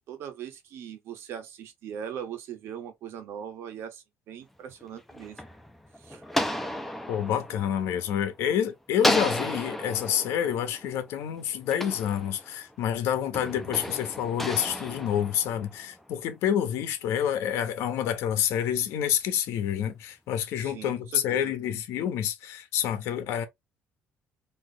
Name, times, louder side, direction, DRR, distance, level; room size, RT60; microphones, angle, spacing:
voice 1, 0.0-5.4 6.0-6.2 20.6-21.5, right 8 dB, 70° right, 1.3 m, -40 dB
sound 1, 4.8-8.5 9.0-12.7 13.3-16.0, left 1 dB, 5° left, 0.7 m, -33 dB
voice 2, 7.1-23.5, left 9 dB, 80° left, 1.2 m, -28 dB
4.3 x 3.0 x 2.9 m
cardioid pair, 110°, 4 cm